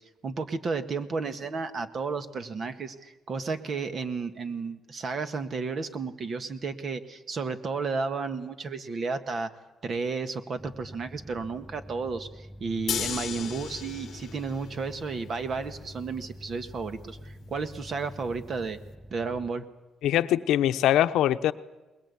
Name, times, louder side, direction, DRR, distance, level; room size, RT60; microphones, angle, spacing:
voice 1, 0.2-9.5 9.8-18.8 19.1-19.7, right 4 dB, 45° right, 9 dB, 1.8 m, -32 dB
sound 1, 10.6-19.5, equal, 15° right, 6.3 m, -46 dB
sound 2, 12.9-18.9, left 9 dB, 60° left, 1.0 m, -39 dB
voice 2, 20.0-21.5, left 12 dB, 85° left, 11 dB, 0.9 m, -23 dB
21.5 x 21.5 x 8.5 m, 1.1 s
cardioid pair, 120°, 0 cm